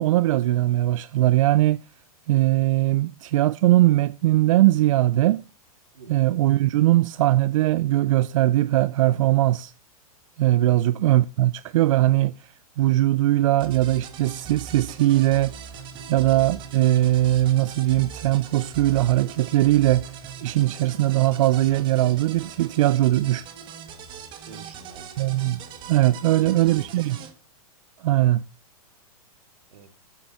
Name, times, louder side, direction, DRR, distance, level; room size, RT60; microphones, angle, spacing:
voice 1, 0.0-1.8 2.3-5.4 6.1-9.7 10.4-12.3 12.8-15.5 16.1-20.0 20.4-23.4 25.2-25.6 25.9-27.2 28.0-28.4, right 15 dB, 60° right, 0.4 m, -20 dB
sound 1, 13.6-27.3, right 7 dB, 25° right, 1.6 m, -40 dB
voice 2, 24.5-25.1 26.2-26.9 29.7-29.9, right 5 dB, 85° right, 2.4 m, -45 dB
8.3 x 7.8 x 7.3 m
hypercardioid pair, 150°, 19 cm